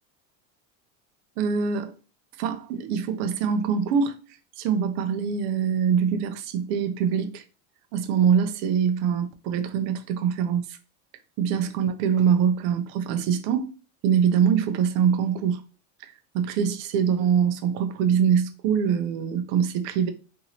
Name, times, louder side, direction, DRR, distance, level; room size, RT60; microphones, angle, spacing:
voice 1, 1.4-1.9 2.4-4.2 4.6-7.4 7.9-10.8 11.4-13.7 14.0-15.6 16.0-20.1, right 7 dB, 50° right, 0.5 m, -24 dB
3.0 x 2.6 x 2.8 m
supercardioid pair, 145°, 47 cm